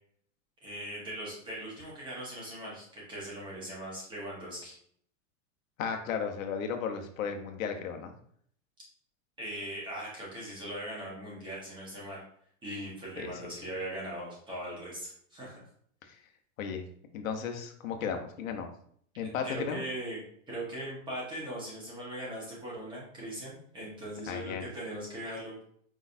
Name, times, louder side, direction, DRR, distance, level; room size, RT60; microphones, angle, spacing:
voice 1, 0.6-4.8 9.4-12.2 12.6-15.6 19.4-25.6, right 1 dB, 10° right, -6 dB, 1.4 m, -40 dB
voice 2, 5.8-8.1 13.2-13.6 16.1-16.2 16.6-16.8 17.1-18.7 19.2-19.8 24.3-24.7, left 6 dB, 85° left, 4 dB, 1.0 m, -35 dB
5.0 x 4.0 x 2.7 m, 0.62 s
supercardioid pair, 170°, 39 cm